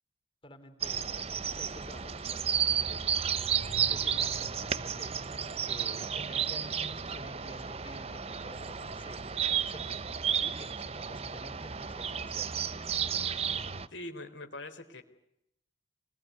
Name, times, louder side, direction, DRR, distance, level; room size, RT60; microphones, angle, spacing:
voice 1, 0.4-3.2 3.7-10.0 10.4-12.6, left 1 dB, 30° left, 7 dB, 4.0 m, -50 dB
sound 1, 0.8-13.9, right 7 dB, 35° right, 1.0 m, -32 dB
voice 2, 13.9-15.0, left 2 dB, 80° left, 7 dB, 3.9 m, -42 dB
27.0 x 21.0 x 9.4 m, 0.78 s
head